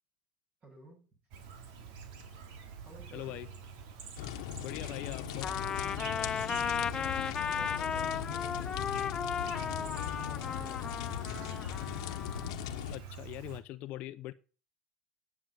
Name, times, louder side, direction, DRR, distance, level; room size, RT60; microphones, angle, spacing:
voice 1, 0.6-1.1 2.8-3.4 6.2-8.9 9.7-11.1, right 2 dB, 35° right, 7.5 m, -52 dB
Chirp tweet, 1.3-13.6, right 6 dB, 65° right, 2.8 m, -47 dB
voice 2, 3.1-3.5 4.6-5.5 12.9-14.3, left 15 dB, 50° left, 0.8 m, -42 dB
sound 1, 4.2-13.0, left 12 dB, 75° left, 1.3 m, -39 dB
Trumpet, 5.4-12.5, left 7 dB, 25° left, 0.5 m, -35 dB
10.5 x 7.3 x 9.2 m
supercardioid pair, 135°, 3 cm